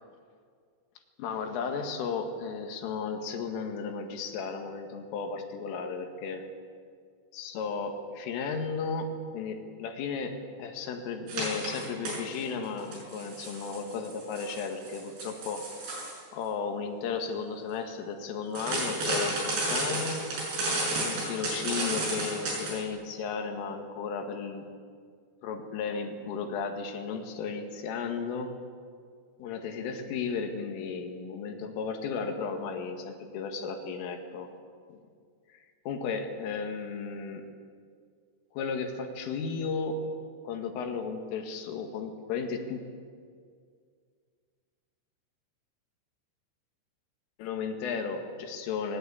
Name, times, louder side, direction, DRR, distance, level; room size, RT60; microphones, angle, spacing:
voice 1, 1.2-6.4 7.3-15.6 16.3-20.2 21.0-24.7 25.4-28.5 29.4-34.5 34.9-35.0 35.5-35.6 35.9-37.5 38.5-40.0 40.4-42.8 47.4-49.0, left 5 dB, 80° left, 4 dB, 4.4 m, -34 dB
sound 1, 11.3-12.4 12.8-16.2 18.6-22.8, right 2 dB, 60° right, 8.6 m, -32 dB
20.5 x 19.5 x 8.5 m, 2.1 s
omnidirectional pair, 5.8 m